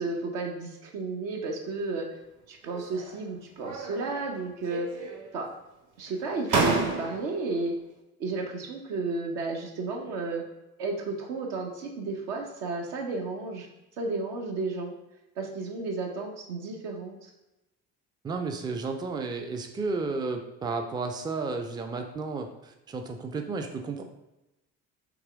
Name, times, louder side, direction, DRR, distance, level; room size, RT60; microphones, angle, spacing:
voice 1, 0.0-2.1 2.5-4.9 5.3-5.5 6.0-7.7 8.2-10.4 10.8-13.7 14.0-14.9 15.4-17.2, right 3 dB, 70° right, 1 dB, 0.9 m, -32 dB
sound 1, 2.6-3.2 3.6-4.4 4.7-5.4 6.1-6.2 6.5-7.4, right 3 dB, 40° right, 0.9 m, -30 dB
voice 2, 18.2-24.0, right 4 dB, 10° right, 5 dB, 0.3 m, -32 dB
3.6 x 3.0 x 3.4 m, 0.96 s
figure-of-eight pair, 50°, 47 cm